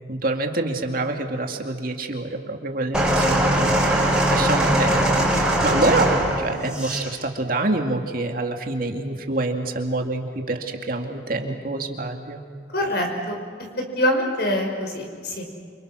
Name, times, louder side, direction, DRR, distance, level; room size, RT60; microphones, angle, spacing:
voice 1, 0.1-12.4, right 2 dB, 50° right, 3 dB, 2.3 m, -26 dB
sound 1, 2.9-7.1 8.0-8.1, right 1 dB, 5° right, 5.2 m, -21 dB
voice 2, 12.7-13.4 14.0-15.5, left 1 dB, 60° left, 3 dB, 5.7 m, -24 dB
29.5 x 27.0 x 6.3 m, 2.1 s
head